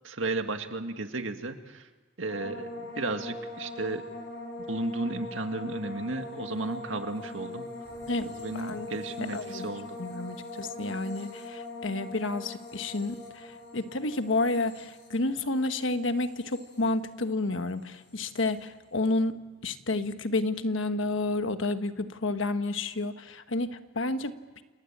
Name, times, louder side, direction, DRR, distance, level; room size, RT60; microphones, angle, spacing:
voice 1, 0.0-1.9 2.2-4.0 4.6-7.6 8.2-10.0, right 2 dB, 80° right, 7 dB, 1.9 m, -34 dB
sound 1, 2.3-17.5 17.8-18.4, left 2 dB, 60° left, 5.8 m, -42 dB
sound 2, 7.8-9.8, equal, 60° right, 4.4 m, -58 dB
voice 2, 8.1-8.9 9.2-9.7 10.0-24.6, left 2 dB, 80° left, 9 dB, 1.3 m, -30 dB
28.5 x 20.0 x 8.7 m, 1.3 s
head